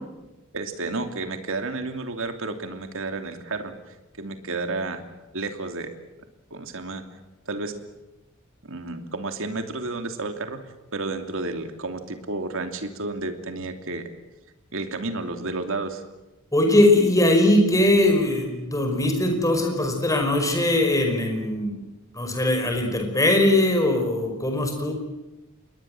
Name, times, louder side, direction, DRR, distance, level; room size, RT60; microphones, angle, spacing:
voice 1, 0.5-5.0 5.3-5.9 6.5-7.0 7.5-7.7 8.6-10.6 10.9-14.1 14.7-16.0, right 3 dB, 65° right, 7 dB, 3.0 m, -31 dB
voice 2, 16.5-21.8 22.1-24.9, left 1 dB, 15° left, 4 dB, 5.3 m, -20 dB
28.0 x 21.5 x 7.8 m, 1.0 s
head